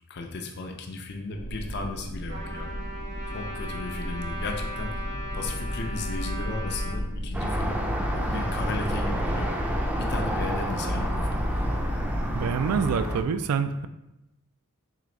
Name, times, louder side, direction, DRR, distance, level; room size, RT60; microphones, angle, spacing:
voice 1, 0.1-2.7 3.3-4.9 5.3-7.8 8.1-9.5 10.0-11.5, left 3 dB, 50° left, 3 dB, 0.5 m, -35 dB
sound 1, 1.3-12.5, equal, 85° left, 0.8 m, -33 dB
Trumpet, 2.3-7.0, equal, 55° right, 0.9 m, -38 dB
sound 2, 7.3-13.2, equal, 5° right, 0.4 m, -29 dB
voice 2, 12.3-13.9, right 6 dB, 75° right, 11 dB, 0.3 m, -26 dB
3.8 x 3.4 x 3.1 m, 0.92 s
head